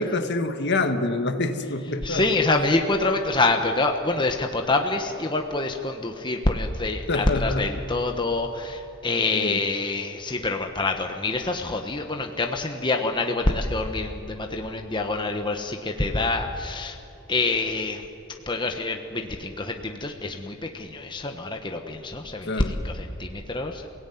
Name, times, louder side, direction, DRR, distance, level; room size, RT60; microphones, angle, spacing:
voice 1, 0.0-2.2 7.1-7.7 9.3-9.6 22.4-22.7, left 2 dB, 50° left, 7 dB, 1.6 m, -26 dB
voice 2, 2.0-17.0 17.3-18.0 18.5-23.9, left 2 dB, 20° left, 3 dB, 1.2 m, -26 dB
28.0 x 17.5 x 9.4 m, 2.7 s
head